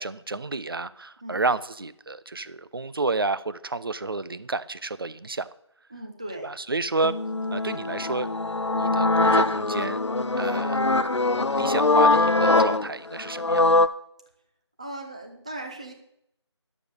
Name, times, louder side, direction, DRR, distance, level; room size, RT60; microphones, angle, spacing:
voice 1, 0.0-5.5 6.4-7.2 7.5-8.3 8.8-10.0 10.4-10.8 11.5-13.7, right 3 dB, 50° right, 15 dB, 0.6 m, -30 dB
voice 2, 5.9-6.5 14.8-15.9, right 1 dB, 15° right, 4 dB, 0.7 m, -38 dB
sound 1, 7.0-13.9, left 3 dB, 75° left, 0.8 m, -22 dB
11.5 x 7.2 x 6.5 m, 0.76 s
figure-of-eight pair, 170°, 15 cm